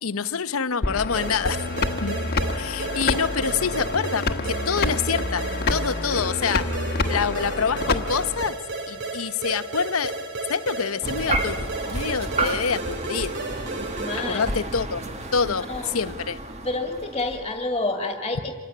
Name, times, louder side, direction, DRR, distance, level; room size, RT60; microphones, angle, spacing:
voice 1, 0.0-1.6 2.0-6.7 7.1-8.6 8.9-10.1 10.5-13.3 14.3-15.0 15.3-16.4, left 6 dB, 80° left, 13 dB, 0.9 m, -26 dB
sound 1, 0.8-8.4, left 3 dB, 50° left, 1.3 m, -28 dB
sound 2, 1.1-14.5, right 3 dB, 55° right, 2.9 m, -33 dB
sound 3, 11.0-17.6, right 2 dB, 30° right, 1.7 m, -31 dB
voice 2, 13.9-14.5 15.4-15.9 16.6-18.5, left 2 dB, 20° left, 4 dB, 2.2 m, -29 dB
26.5 x 16.0 x 9.8 m, 1.4 s
head